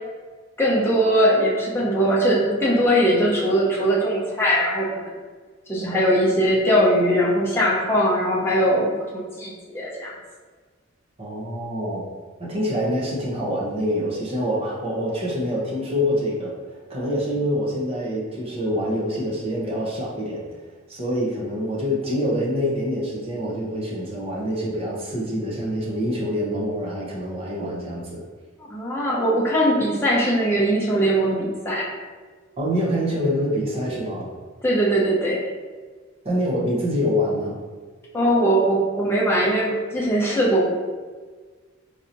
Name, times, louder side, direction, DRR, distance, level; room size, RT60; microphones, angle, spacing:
voice 1, 0.6-5.1 5.7-10.1 28.7-31.9 34.6-35.4 38.1-40.6, equal, 10° left, -6 dB, 0.7 m, -20 dB
voice 2, 11.2-12.0 12.4-16.5 16.9-20.4 20.9-28.2 32.6-34.3 36.2-37.6, equal, 30° right, -4 dB, 0.8 m, -25 dB
4.6 x 2.8 x 2.6 m, 1.5 s
head